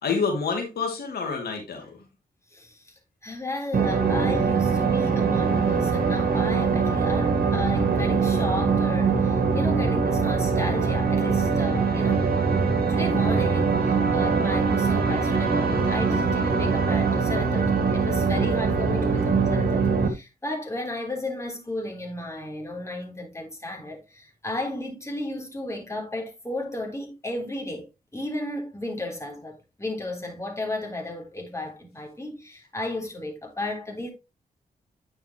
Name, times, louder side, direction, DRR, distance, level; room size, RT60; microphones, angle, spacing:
voice 1, 0.0-2.0, left 5 dB, 80° left, 2.3 m, -28 dB
voice 2, 3.2-12.3 12.9-27.9 28.1-34.1, left 2 dB, 15° left, 3.5 m, -34 dB
sound 1, 3.7-20.1, right 5 dB, 70° right, 1.7 m, -22 dB
9.5 x 5.6 x 2.9 m
cardioid pair, 50°, 16 cm